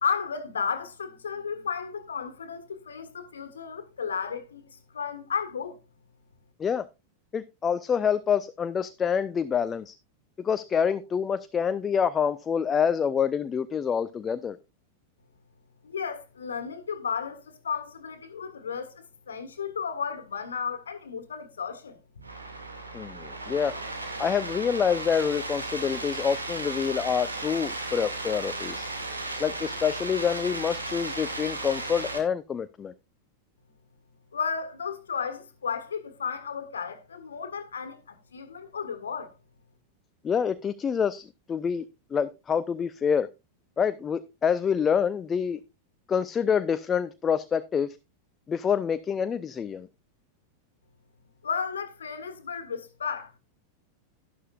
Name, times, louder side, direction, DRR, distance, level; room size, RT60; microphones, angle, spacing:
voice 1, 0.0-5.8 15.8-22.0 34.3-39.3 51.4-53.3, left 6 dB, 70° left, 1.7 m, -33 dB
voice 2, 7.3-9.9 10.4-14.6 22.9-23.7 24.2-28.9 29.4-32.9 40.2-41.9 42.1-43.3 43.8-45.6 46.1-48.0 48.5-49.9, left 7 dB, 20° left, 0.5 m, -27 dB
sound 1, 22.2-32.2, right 2 dB, 80° right, 2.2 m, -35 dB
12.0 x 11.0 x 2.4 m
figure-of-eight pair, 90°, 0 cm